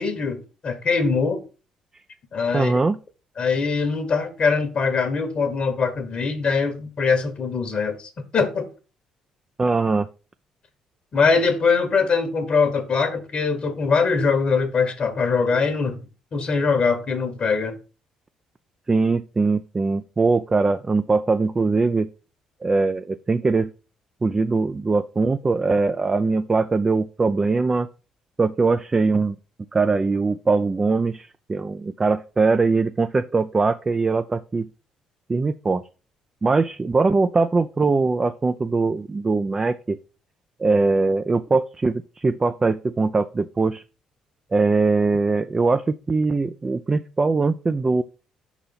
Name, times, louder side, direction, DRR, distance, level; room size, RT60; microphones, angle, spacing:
voice 1, 0.0-1.4 2.3-2.8 3.4-8.7 11.1-16.0 16.3-17.8, left 5 dB, 45° left, 1.2 m, -22 dB
voice 2, 2.5-3.0 9.6-10.1 18.9-22.1 22.6-23.7 24.2-27.9 28.4-29.4 29.7-34.7 35.3-35.8 36.4-40.0 40.6-43.8 44.5-48.0, right 3 dB, 25° right, 0.4 m, -21 dB
5.5 x 4.0 x 5.7 m
figure-of-eight pair, 45°, 2 cm